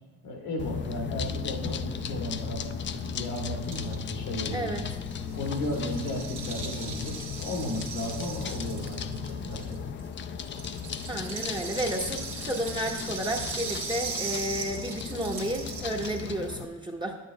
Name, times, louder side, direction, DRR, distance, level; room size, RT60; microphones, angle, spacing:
voice 1, 0.2-2.6 2.9-4.7 5.3-9.8, left 1 dB, 90° left, 0 dB, 1.6 m, -34 dB
sound 1, 0.6-16.7, left 7 dB, 40° left, 0.4 m, -36 dB
Rattle (instrument), 2.4-2.5 2.6-2.7 2.9-10.1 10.4-16.2, right 5 dB, 90° right, 1.6 m, -39 dB
voice 2, 4.5-4.9 11.1-17.2, right 1 dB, 15° right, 1 dB, 0.8 m, -32 dB
9.7 x 8.9 x 2.2 m, 1.2 s
cardioid pair, 90°, 30 cm